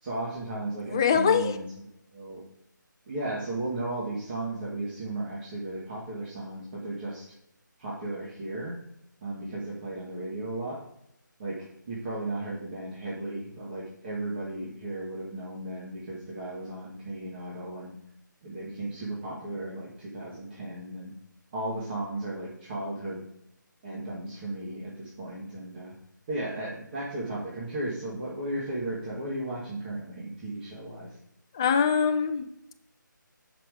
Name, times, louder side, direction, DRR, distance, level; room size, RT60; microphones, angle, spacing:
voice 1, 0.0-1.7 2.1-2.4 3.1-7.4 7.8-8.7 9.2-10.8 11.4-17.9 18.4-21.1 21.5-23.2 23.8-25.9 26.3-31.2, right 2 dB, 30° right, -6 dB, 2.0 m, -35 dB
voice 2, 0.9-1.5 31.5-32.5, left 7 dB, 15° left, 8 dB, 0.3 m, -23 dB
7.7 x 6.0 x 5.0 m, 0.79 s
figure-of-eight pair, 160°, 11 cm